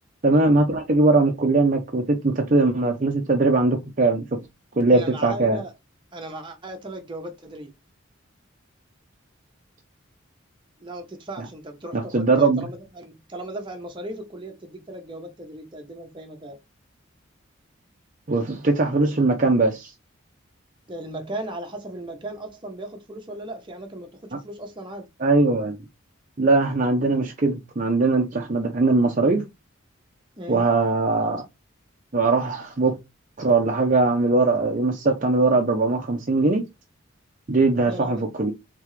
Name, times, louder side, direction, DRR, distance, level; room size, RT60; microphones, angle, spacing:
voice 1, 0.2-4.4 4.8-5.6 11.9-12.7 18.3-19.9 25.2-25.8 26.4-29.5 30.5-31.4 32.1-33.0 33.4-36.7 37.5-38.5, right 3 dB, 40° right, 0.6 m, -20 dB
voice 2, 4.9-5.7 6.1-7.7 10.8-16.6 20.9-25.1 30.4-30.7 37.8-38.3, right 1 dB, 25° right, 0.9 m, -37 dB
3.7 x 3.4 x 3.2 m
head